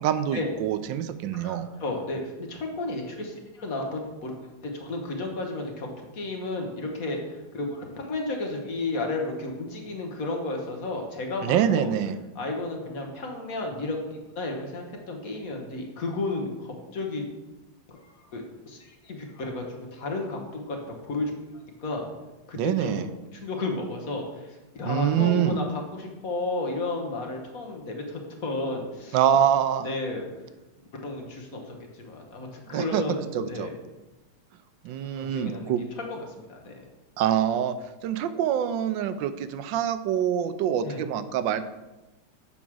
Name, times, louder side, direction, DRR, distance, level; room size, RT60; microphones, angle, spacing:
voice 1, 0.0-1.7 11.4-12.2 22.6-23.0 24.8-25.6 29.1-29.9 32.7-33.0 33.3-33.7 34.8-35.8 37.2-37.7 38.0-41.7, right 9 dB, 85° right, 12 dB, 1.3 m, -25 dB
voice 2, 1.3-4.3 4.6-11.9 12.3-17.2 17.9-21.3 21.8-22.1 22.5-23.0 23.4-29.2 29.8-30.3 30.9-33.7 35.2-35.7 36.1-36.8 40.8-41.0, left 2 dB, 50° left, 2 dB, 1.5 m, -33 dB
7.3 x 5.2 x 6.1 m, 1.1 s
omnidirectional pair, 2.0 m